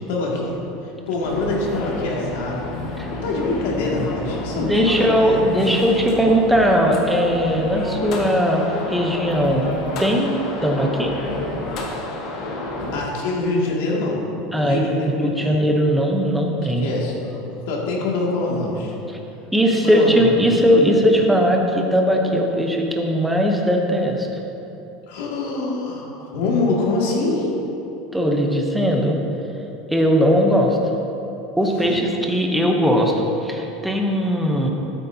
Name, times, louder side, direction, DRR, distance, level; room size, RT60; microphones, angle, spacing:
voice 1, 0.1-0.6 0.8-2.6 3.2-5.4 12.9-14.2 14.5-15.5 16.8-18.9 19.8-20.2 25.1-27.5 31.8-31.9, left 2 dB, 75° left, -3 dB, 2.1 m, -24 dB
sound 1, 1.2-13.0, left 2 dB, 40° left, 1.2 m, -29 dB
voice 2, 4.5-11.2 14.5-16.9 19.1-19.2 19.5-24.3 28.1-29.2 29.9-30.8 31.6-34.7, equal, ahead, 1 dB, 0.8 m, -19 dB
12.5 x 8.7 x 2.7 m, 2.9 s
supercardioid pair, 170°, 0 cm